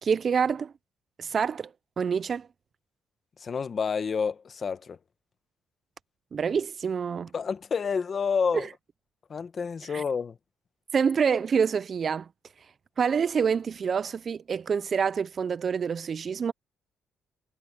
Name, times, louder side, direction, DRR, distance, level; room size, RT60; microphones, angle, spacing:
voice 1, 0.0-0.7 1.2-1.7 2.0-2.5 6.3-7.3 9.9-10.0 10.9-12.3 13.0-16.5, right 6 dB, 35° right, 0.3 m, -26 dB
voice 2, 3.4-5.0 7.3-8.7 9.3-10.4, left 6 dB, 35° left, 1.1 m, -29 dB
cardioid pair, 145°, 0 cm